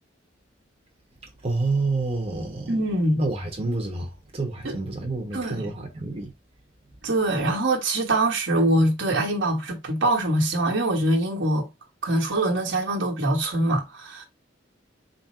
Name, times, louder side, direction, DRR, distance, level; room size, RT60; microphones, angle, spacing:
voice 1, 1.4-2.7 3.2-6.3, right 3 dB, 30° right, 0.9 m, -28 dB
voice 2, 2.7-3.3 4.6-4.8 5.3-5.7 7.0-11.7 12.0-14.2, right 1 dB, 75° right, 1.2 m, -23 dB
3.7 x 2.1 x 4.2 m
head